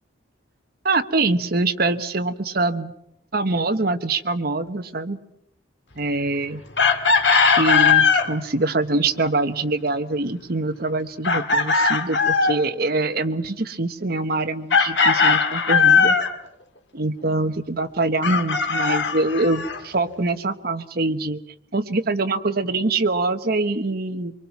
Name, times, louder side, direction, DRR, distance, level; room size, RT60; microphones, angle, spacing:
voice 1, 0.8-2.9 3.3-5.2 6.0-6.6 7.6-16.2 16.9-21.4 21.7-24.3, right 2 dB, 55° right, 9 dB, 1.2 m, -24 dB
Chicken rooster, 6.8-8.3 11.2-12.6 14.7-16.3 18.2-19.8, left 5 dB, 70° left, 1.8 m, -18 dB
24.5 x 24.0 x 6.0 m, 0.77 s
head